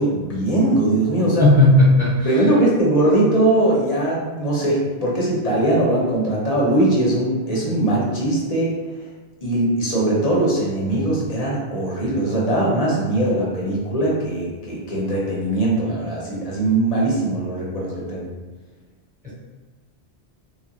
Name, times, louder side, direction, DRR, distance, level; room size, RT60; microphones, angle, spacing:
voice 1, 0.0-1.5 2.2-8.8 9.4-18.3, right 1 dB, 40° left, -5 dB, 0.7 m, -20 dB
voice 2, 1.4-2.3 19.2-19.3, left 2 dB, 10° right, -10 dB, 1.1 m, -14 dB
3.1 x 2.4 x 2.9 m, 1.3 s
omnidirectional pair, 1.2 m